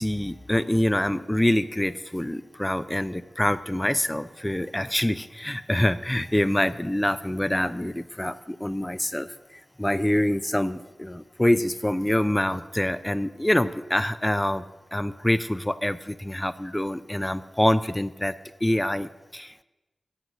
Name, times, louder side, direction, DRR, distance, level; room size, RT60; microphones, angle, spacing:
voice 1, 0.0-9.3 9.8-14.6 14.9-18.3 18.6-19.6, left 1 dB, 10° left, 13 dB, 0.5 m, -25 dB
14.0 x 8.2 x 6.1 m, 1.1 s
wide cardioid pair, 70°, 0 cm